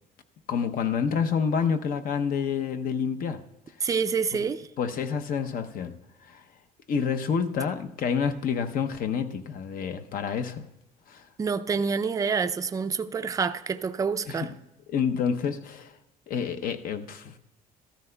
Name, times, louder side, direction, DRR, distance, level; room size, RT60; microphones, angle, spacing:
voice 1, 0.5-3.4 4.8-5.9 6.2-6.4 6.9-10.7 11.1-11.3 14.3-14.6 14.9-15.9 16.3-17.4, left 6 dB, 55° left, 0.7 m, -28 dB
voice 2, 3.8-4.7 11.4-14.5, right 5 dB, 20° right, 0.4 m, -27 dB
14.5 x 13.0 x 2.2 m
cardioid pair, 110°, 17 cm